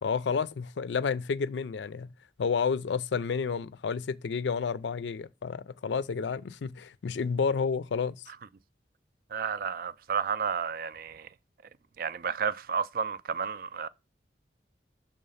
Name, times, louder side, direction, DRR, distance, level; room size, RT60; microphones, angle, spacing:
voice 1, 0.0-2.1 2.4-8.2, left 5 dB, 85° left, 0.4 m, -30 dB
voice 2, 9.3-11.3 12.0-13.9, right 6 dB, 55° right, 0.4 m, -31 dB
6.5 x 3.7 x 5.5 m
head